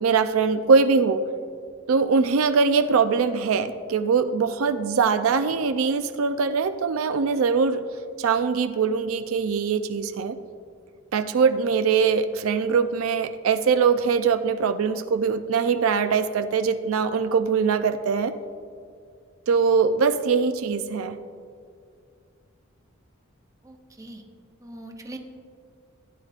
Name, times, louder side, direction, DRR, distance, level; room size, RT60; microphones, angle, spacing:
voice 1, 0.0-1.2 1.9-7.8 8.2-10.4 11.1-18.3 19.5-21.2, right 5 dB, 80° right, 10 dB, 0.4 m, -22 dB
voice 2, 23.6-24.2 24.6-25.2, right 1 dB, 15° right, 3 dB, 0.7 m, -41 dB
15.5 x 9.4 x 2.4 m, 2.2 s
head